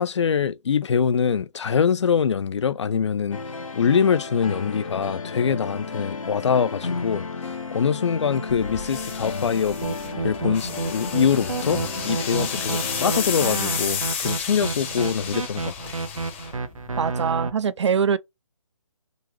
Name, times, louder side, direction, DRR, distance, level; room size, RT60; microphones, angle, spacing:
voice 1, 0.0-3.4 3.7-7.3 7.7-9.9 10.2-16.0, left 7 dB, 60° left, 0.4 m, -24 dB
sound 1, 3.3-13.5, left 4 dB, 90° left, 0.9 m, -33 dB
sound 2, 8.5-17.1, left 6 dB, 25° left, 0.7 m, -32 dB
sound 3, 9.8-17.5, right 4 dB, 90° right, 0.8 m, -30 dB
voice 2, 17.0-18.2, right 7 dB, 60° right, 0.4 m, -23 dB
3.8 x 2.3 x 3.0 m
hypercardioid pair, 160°, 17 cm